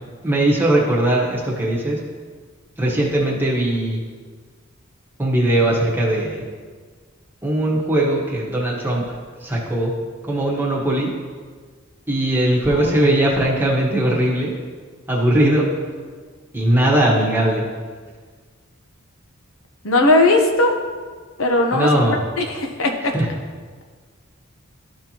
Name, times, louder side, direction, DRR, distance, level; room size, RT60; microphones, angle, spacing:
voice 1, 0.2-2.0 2.8-4.0 5.2-6.4 7.4-9.1 9.4-9.9 10.2-11.1 12.1-14.5 15.1-15.7 16.5-17.6 21.7-22.2 23.1-23.3, right 1 dB, 10° right, -4 dB, 1.3 m, -19 dB
voice 2, 12.7-13.0 19.8-20.8 21.4-21.9 22.4-23.1, left 2 dB, 70° left, 3 dB, 0.8 m, -18 dB
12.5 x 4.5 x 2.9 m, 1.5 s
head